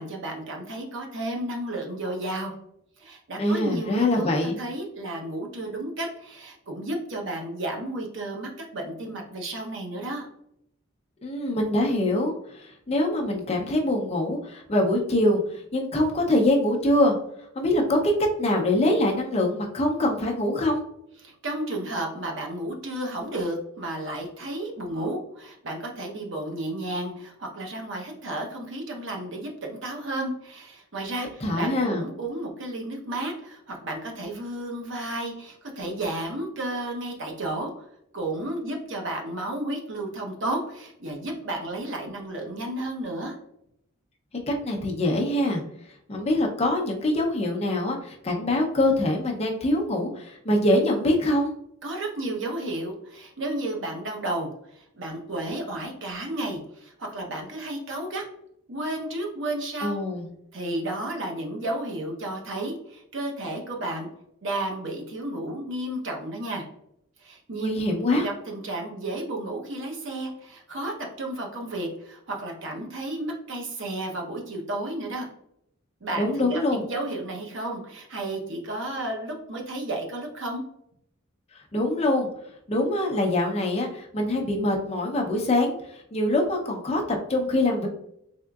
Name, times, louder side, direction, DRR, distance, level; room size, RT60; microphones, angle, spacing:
voice 1, 0.0-2.5 3.0-10.3 21.2-37.9 38.1-43.4 51.8-58.2 58.7-60.0 60.5-64.1 64.4-66.6 67.2-67.7 68.1-75.3 76.0-80.6, right 1 dB, 60° right, 1 dB, 0.8 m, -32 dB
voice 2, 3.4-4.6 11.2-17.2 17.6-20.8 31.4-32.0 44.5-45.6 46.1-51.5 59.8-60.3 67.5-68.3 76.2-76.8 81.5-82.3 82.7-87.9, left 1 dB, 30° left, 1 dB, 0.6 m, -24 dB
3.7 x 3.5 x 2.3 m, 0.75 s
head